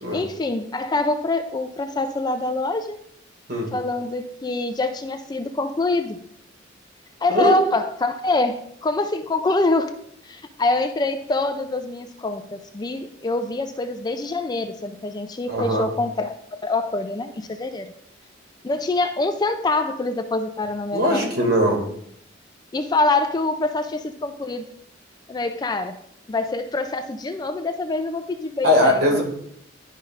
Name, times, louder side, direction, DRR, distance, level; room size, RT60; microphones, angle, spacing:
voice 1, 0.1-3.0 3.7-6.2 7.2-9.9 10.2-17.9 18.6-21.3 22.7-24.7 25.3-26.0 26.3-29.2, left 2 dB, 20° left, 8 dB, 0.4 m, -25 dB
voice 2, 15.5-15.9 20.9-21.8 28.6-29.2, equal, 55° right, 0 dB, 2.1 m, -20 dB
11.5 x 5.4 x 2.5 m, 0.69 s
head